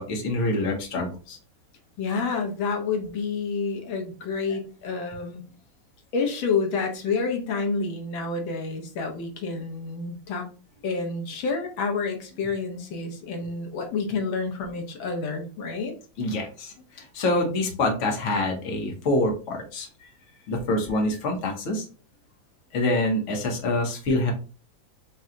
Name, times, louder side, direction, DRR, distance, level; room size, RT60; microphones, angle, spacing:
voice 1, 0.0-1.4 16.2-16.7 17.1-19.9 20.5-21.8 22.7-24.3, left 2 dB, 45° left, 1 dB, 1.1 m, -26 dB
voice 2, 2.0-5.4 6.1-10.5 10.8-15.9, left 4 dB, 75° left, 2 dB, 1.7 m, -29 dB
4.2 x 2.3 x 3.7 m, 0.36 s
omnidirectional pair, 2.2 m